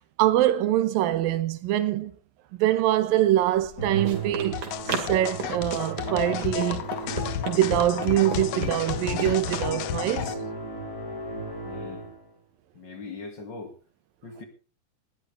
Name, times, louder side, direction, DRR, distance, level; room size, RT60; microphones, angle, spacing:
voice 1, 0.0-2.1 2.6-6.9 7.5-10.4, right 13 dB, 85° right, 2.7 m, -24 dB
Run, 3.5-9.7, right 5 dB, 65° right, 3.8 m, -36 dB
Musical instrument, 3.8-12.3, right 3 dB, 20° left, 4.5 m, -36 dB
sound 1, 4.5-10.3, left 11 dB, 75° left, 1.6 m, -32 dB
voice 2, 11.6-12.1 12.7-13.7 14.2-14.4, left 4 dB, 35° left, 2.4 m, -40 dB
19.5 x 12.0 x 3.4 m
omnidirectional pair, 3.9 m